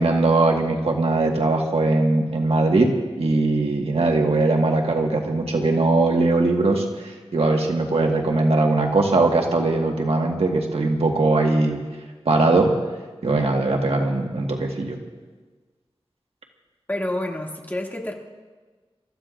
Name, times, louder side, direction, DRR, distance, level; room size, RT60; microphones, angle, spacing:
voice 1, 0.0-11.8 12.2-12.7 13.2-15.0, right 2 dB, 80° right, 1 dB, 1.6 m, -20 dB
voice 2, 16.9-18.1, left 1 dB, 20° left, -1 dB, 2.3 m, -28 dB
28.0 x 14.5 x 2.5 m, 1.4 s
wide cardioid pair, 60°, 10 cm